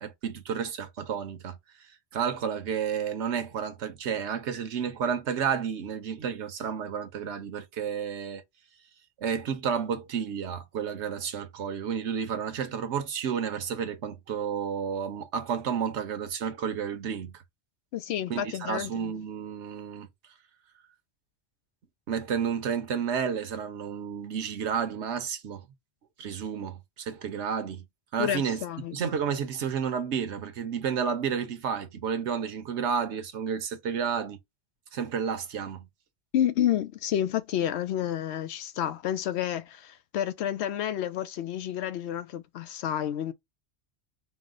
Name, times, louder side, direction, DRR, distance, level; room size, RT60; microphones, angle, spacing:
voice 1, 0.0-1.6 2.1-8.4 9.2-17.4 18.3-20.1 22.1-25.7 26.2-27.9 28.1-28.6 28.9-34.4 34.9-35.9, right 7 dB, 80° right, 1.1 m, -31 dB
voice 2, 17.9-19.0 28.2-28.9 36.3-43.3, left 10 dB, 75° left, 0.8 m, -30 dB
4.7 x 2.1 x 3.7 m
omnidirectional pair, 1.2 m